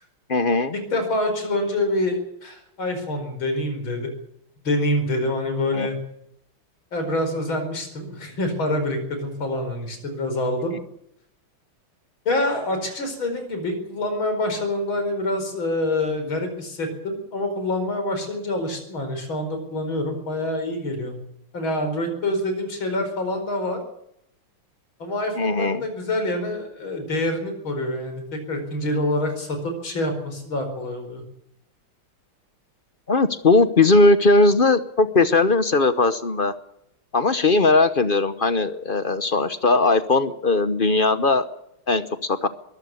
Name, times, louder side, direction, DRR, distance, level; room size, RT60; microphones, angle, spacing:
voice 1, 0.3-0.7 5.7-5.9 25.4-25.8 33.1-36.5 37.1-41.5 41.9-42.5, left 3 dB, 40° left, 12 dB, 0.8 m, -19 dB
voice 2, 0.9-4.0 4.6-6.0 6.9-10.8 12.3-21.2 21.5-23.8 25.0-31.2, left 1 dB, 65° left, 6 dB, 5.5 m, -26 dB
22.5 x 14.0 x 9.6 m, 0.78 s
omnidirectional pair, 2.3 m